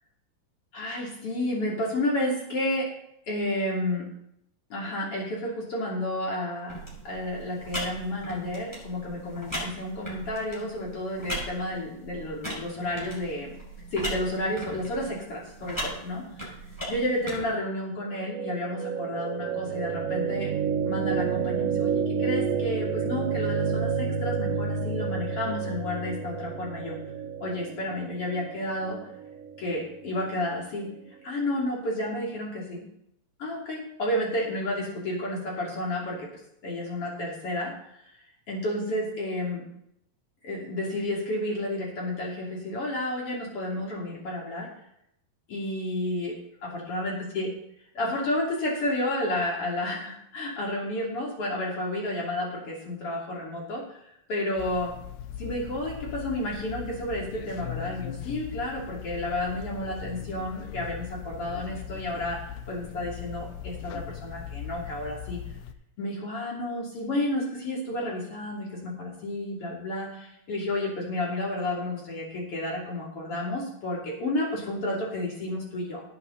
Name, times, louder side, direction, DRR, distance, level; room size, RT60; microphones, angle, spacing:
voice 1, 0.7-2.9 3.3-4.1 4.7-6.8 7.0-13.5 13.9-16.5 16.9-20.5 20.8-27.0 27.4-29.0 29.6-30.9 31.2-32.9 33.4-36.3 36.6-37.7 38.5-39.6 40.4-44.7 45.5-46.4 46.6-47.5 48.0-54.0 54.3-54.9 55.4-65.4 66.0-76.0, left 1 dB, 45° left, -3 dB, 3.6 m, -31 dB
sound 1, 6.7-17.4, right 1 dB, 5° left, 5.9 m, -38 dB
sound 2, 18.2-30.3, right 6 dB, 85° right, 1.4 m, -30 dB
sound 3, 54.6-65.7, left 10 dB, 75° left, 2.2 m, -39 dB
18.0 x 8.3 x 4.0 m, 0.76 s
omnidirectional pair, 4.0 m